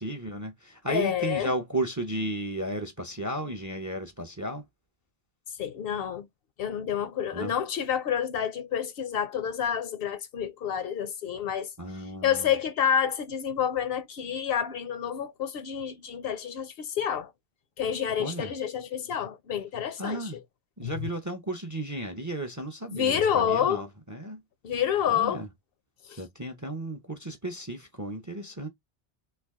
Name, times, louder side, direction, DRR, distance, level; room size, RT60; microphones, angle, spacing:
voice 1, 0.0-4.6 7.3-7.5 11.8-12.5 18.2-18.5 20.0-20.4 20.8-24.4 25.1-25.5 26.2-28.7, right 1 dB, 25° right, 0.5 m, -34 dB
voice 2, 0.9-1.5 5.6-6.3 6.6-11.7 12.2-17.3 17.8-20.3 20.8-21.1 22.9-23.9 24.6-25.4 26.1-26.2, left 8 dB, 70° left, 0.7 m, -28 dB
3.2 x 2.4 x 3.5 m
omnidirectional pair, 1.1 m